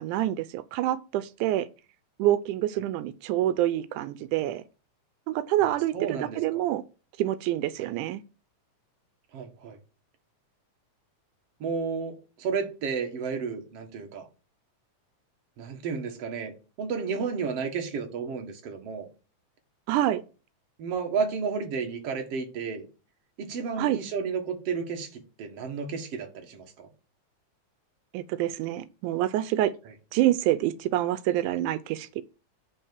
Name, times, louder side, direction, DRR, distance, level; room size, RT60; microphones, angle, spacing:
voice 1, 0.0-1.7 2.2-4.6 5.3-6.8 7.2-8.2 19.9-20.2 23.8-24.0 28.1-29.7 30.1-32.2, right 13 dB, 90° right, 2.1 m, -27 dB
voice 2, 5.6-6.7 7.8-7.9 9.3-9.8 11.6-14.3 15.6-19.1 20.8-22.9 23.4-26.9, right 5 dB, 55° right, 2.5 m, -32 dB
10.0 x 3.6 x 7.0 m
omnidirectional pair, 3.4 m